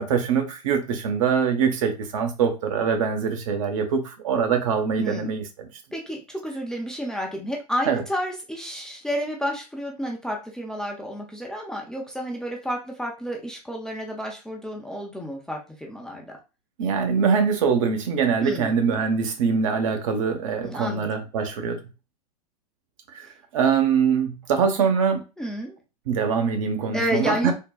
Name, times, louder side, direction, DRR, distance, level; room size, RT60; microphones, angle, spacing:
voice 1, 0.0-5.7 7.9-8.0 16.8-21.8 23.2-23.3 23.5-25.2 26.1-27.5, right 6 dB, 55° right, 0.7 m, -23 dB
voice 2, 5.0-5.3 5.9-16.4 18.4-18.7 20.6-21.1 25.4-25.8 26.9-27.5, equal, 5° left, 0.5 m, -30 dB
3.5 x 2.1 x 2.3 m
figure-of-eight pair, 90°, 21 cm